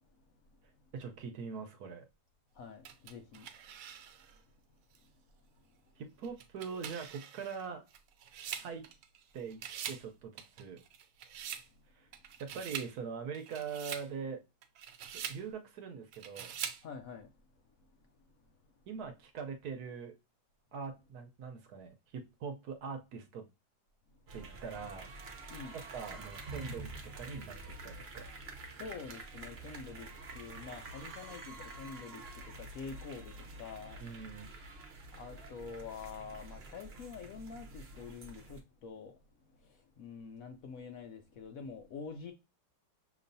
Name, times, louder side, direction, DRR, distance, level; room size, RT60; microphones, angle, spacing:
voice 1, 0.9-2.0 6.0-7.9 8.6-8.9 9.3-9.6 9.9-10.8 11.9-12.1 12.4-14.4 15.1-16.5 18.9-20.1 20.7-23.4 24.3-25.1 25.7-26.9 27.1-27.6 27.8-28.3 34.0-34.5, right 6 dB, 70° right, 1.1 m, -42 dB
voice 2, 2.6-3.5 16.8-17.3 25.5-25.8 28.8-32.2 32.6-34.0 35.1-39.1 40.0-42.3, left 5 dB, 70° left, 0.8 m, -46 dB
sound 1, 2.8-4.4 4.9-5.0 6.2-9.2 9.5-10.1 10.4-11.7 12.1-12.9 13.3-14.1 14.6-15.4 16.1-16.8, right 9 dB, 85° right, 1.3 m, -44 dB
sound 2, 24.3-38.6, right 2 dB, 50° right, 0.8 m, -48 dB
6.1 x 3.0 x 2.6 m
omnidirectional pair, 1.9 m